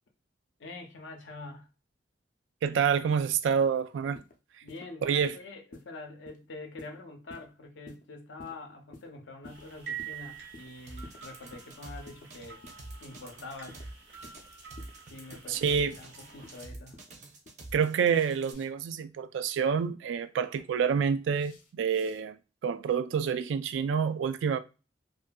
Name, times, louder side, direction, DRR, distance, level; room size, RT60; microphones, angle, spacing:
voice 1, 0.6-1.7 4.6-12.6 13.0-13.8 15.1-17.0, left 2 dB, 90° left, 0.6 m, -45 dB
voice 2, 2.6-4.2 5.0-5.4 15.5-16.0 17.7-24.6, right 7 dB, 85° right, 0.3 m, -28 dB
sound 1, 4.0-4.4 4.7-4.9 5.2-5.4 5.7-5.9 6.2-6.4 6.8-7.0 7.3-7.5 7.9-8.0 8.4-8.6 8.9-9.1 9.4-9.6 10.0-10.2 10.5-10.7 11.0-11.2 11.5-11.7 12.1-12.3 12.6-12.8 13.1-13.3 13.7-13.8 14.2-14.4 14.8-14.9 15.3-15.5 15.9-16.1 16.4-16.6 16.9-17.1 17.4-17.6 18.0-18.7 20.1-20.6 21.3-22.2, left 2 dB, 50° left, 0.5 m, -51 dB
sound 2, 9.4-16.6, right 8 dB, 65° right, 0.9 m, -47 dB
sound 3, 10.9-18.5, right 2 dB, 40° right, 0.6 m, -46 dB
2.5 x 2.5 x 2.2 m
head